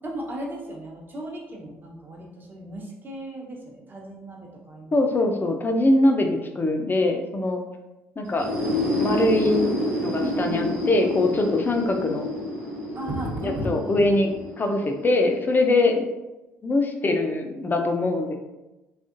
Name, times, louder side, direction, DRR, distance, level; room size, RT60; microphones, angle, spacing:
voice 1, 0.0-5.0 10.2-10.9 12.9-14.1, right 1 dB, 25° right, -2 dB, 0.9 m, -35 dB
voice 2, 4.9-7.6 8.2-8.5 9.0-9.7 10.0-12.3 13.4-14.3 14.6-16.1 16.6-18.4, left 2 dB, 25° left, 4 dB, 0.5 m, -22 dB
sound 1, 8.2-15.9, left 1 dB, 70° right, 1.2 m, -29 dB
3.4 x 2.4 x 2.5 m, 1.0 s
figure-of-eight pair, 50°, 7 cm